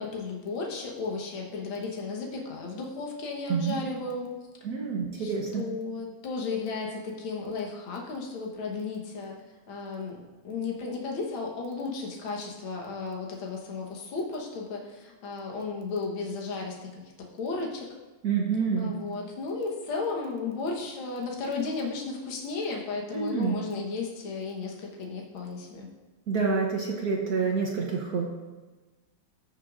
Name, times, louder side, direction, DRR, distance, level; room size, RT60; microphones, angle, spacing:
voice 1, 0.0-4.3 5.2-9.4 9.7-10.2 10.4-16.8 17.0-17.9 18.8-25.9, left 4 dB, 70° left, -1 dB, 2.0 m, -34 dB
voice 2, 3.5-3.8 4.6-5.6 18.2-18.9 23.1-23.6 26.3-28.3, right 5 dB, 55° right, 0 dB, 1.2 m, -27 dB
15.0 x 6.5 x 2.5 m, 1.2 s
omnidirectional pair, 2.4 m